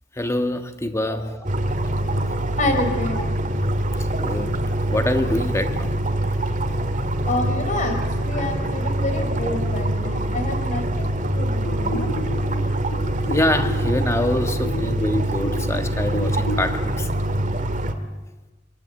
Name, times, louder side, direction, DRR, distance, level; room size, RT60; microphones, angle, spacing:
voice 1, 0.1-1.4 4.2-5.9 8.3-8.5 13.2-17.1 17.4-17.5, left 1 dB, 15° left, 1.7 m, -25 dB
sound 1, 1.4-17.9, right 1 dB, 45° right, 2.0 m, -24 dB
voice 2, 2.6-3.2 7.2-12.1, left 2 dB, 45° left, 4.7 m, -28 dB
sound 2, 11.6-16.6, equal, 70° left, 4.3 m, -33 dB
25.5 x 23.0 x 8.2 m
head